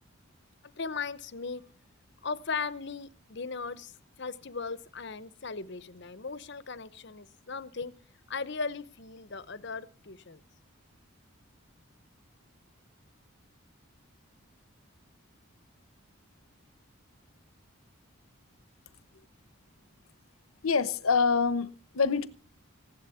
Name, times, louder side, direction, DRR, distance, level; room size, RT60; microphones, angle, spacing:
voice 1, 0.8-1.6 2.2-3.9 4.2-7.9 8.3-10.4, left 4 dB, 55° left, 0.8 m, -37 dB
voice 2, 20.6-22.3, left 5 dB, 85° left, 0.9 m, -26 dB
16.0 x 11.5 x 7.0 m
head